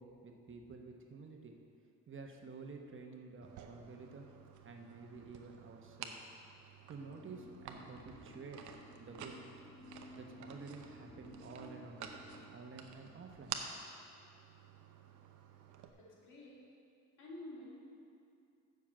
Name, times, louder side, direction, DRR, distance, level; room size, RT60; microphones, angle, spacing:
voice 1, 0.0-1.5 2.1-4.3 4.6-6.1 6.9-8.6 9.0-9.3 10.1-12.2 12.5-13.6 13.9-14.1, right 4 dB, 40° right, 3 dB, 1.1 m, -51 dB
sound 1, 3.4-15.9, right 8 dB, 80° right, 0.8 m, -51 dB
sound 2, 7.1-12.5, left 2 dB, 20° left, 1.0 m, -56 dB
voice 2, 16.0-16.6 17.2-17.8, left 1 dB, 85° left, -4 dB, 2.3 m, -50 dB
7.3 x 6.0 x 7.5 m, 2.5 s
cardioid pair, 90°, 30 cm